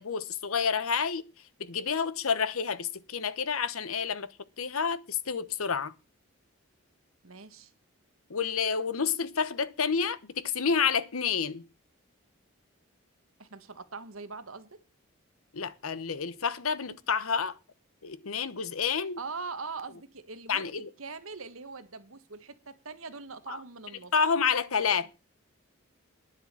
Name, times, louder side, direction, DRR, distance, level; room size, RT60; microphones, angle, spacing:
voice 1, 0.0-5.9 8.3-11.6 15.5-17.6 18.0-19.2 20.5-20.9 23.5-23.6 24.1-25.1, left 6 dB, 90° left, 1.0 m, -29 dB
voice 2, 7.2-7.7 13.4-14.8 19.2-20.7 21.0-24.1, right 4 dB, 80° right, 1.5 m, -42 dB
10.0 x 7.5 x 7.4 m
head